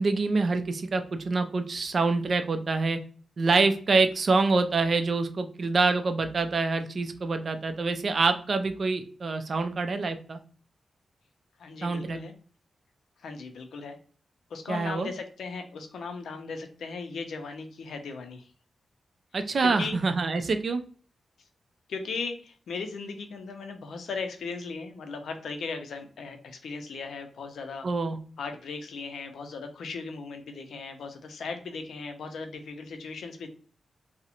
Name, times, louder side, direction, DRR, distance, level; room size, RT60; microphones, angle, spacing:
voice 1, 0.0-3.0 3.4-10.4 11.8-12.2 14.7-15.1 19.3-20.8 27.8-28.2, right 3 dB, 50° right, 8 dB, 0.3 m, -26 dB
voice 2, 11.6-12.3 13.2-14.0 14.5-18.5 19.6-20.0 21.9-27.9 28.4-33.5, left 4 dB, 85° left, 6 dB, 0.4 m, -37 dB
2.4 x 2.0 x 2.8 m, 0.42 s
wide cardioid pair, 115°, 0 cm